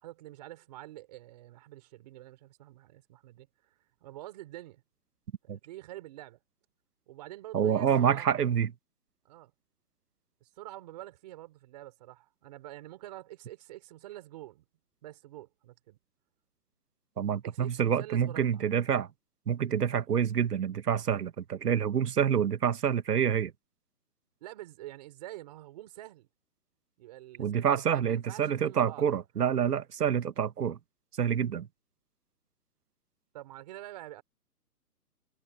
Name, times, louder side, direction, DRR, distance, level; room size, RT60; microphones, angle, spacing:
voice 1, 0.0-3.5 4.0-4.8 5.5-6.4 7.1-8.3 9.2-9.5 10.4-14.7 15.0-16.0 17.4-18.6 24.4-26.3 27.0-29.1 33.3-34.2, right 16 dB, 25° right, 4.1 m, -46 dB
voice 2, 7.5-8.7 17.2-19.1 19.5-23.5 27.4-30.8 31.2-31.7, right 8 dB, 75° right, 1.4 m, -27 dB
hypercardioid pair, 175°, 47 cm